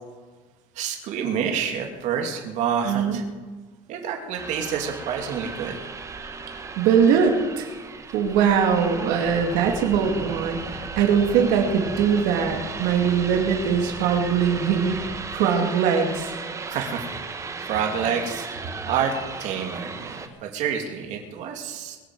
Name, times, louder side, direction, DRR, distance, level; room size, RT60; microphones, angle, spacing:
voice 1, 0.7-3.2 3.9-5.8 16.7-17.4 17.6-18.5 18.8-19.1 19.4-22.0, right 7 dB, 65° right, 3 dB, 2.7 m, -28 dB
voice 2, 2.8-3.2 6.8-7.7 8.1-15.0 15.3-16.3, right 7 dB, 90° right, 2 dB, 2.4 m, -21 dB
sound 1, 4.4-20.3, right 4 dB, 25° right, 1.4 m, -36 dB
sound 2, 9.3-15.3, left 1 dB, 20° left, 3.8 m, -41 dB
22.0 x 7.4 x 7.8 m, 1.4 s
cardioid pair, 135°, 13 cm